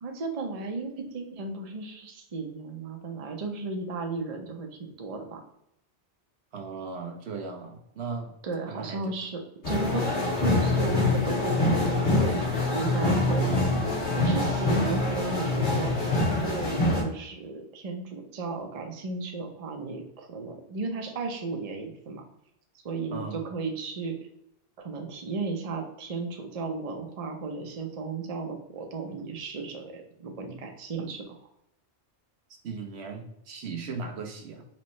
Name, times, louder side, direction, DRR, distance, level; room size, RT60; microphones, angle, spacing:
voice 1, 0.0-5.4 8.4-9.4 9.7-10.0 10.4-13.4 14.1-16.0 16.4-22.2 22.8-24.2 24.8-31.4, right 3 dB, 40° right, 3 dB, 0.7 m, -34 dB
voice 2, 6.5-8.3 8.7-9.0 14.7-14.8 23.1-23.4 32.6-34.6, right 4 dB, 70° right, 3 dB, 1.0 m, -37 dB
sound 1, 9.6-17.0, left 2 dB, 80° left, 2.1 m, -25 dB
4.3 x 3.2 x 3.1 m, 0.78 s
omnidirectional pair, 1.1 m